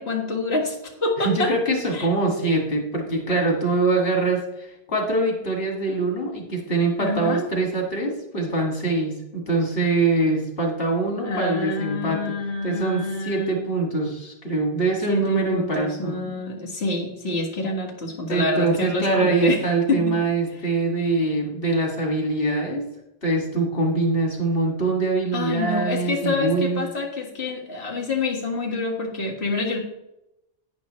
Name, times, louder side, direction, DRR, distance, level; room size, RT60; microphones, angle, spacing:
voice 1, 0.0-1.5 1.9-2.1 7.0-7.5 11.2-13.6 15.1-19.6 19.9-20.2 25.3-29.8, left 3 dB, 85° left, -1 dB, 2.0 m, -27 dB
voice 2, 1.2-12.4 12.6-16.4 18.3-22.8 23.2-26.9, right 2 dB, 65° left, 1 dB, 2.5 m, -23 dB
10.5 x 9.7 x 3.2 m, 0.89 s
omnidirectional pair, 1.0 m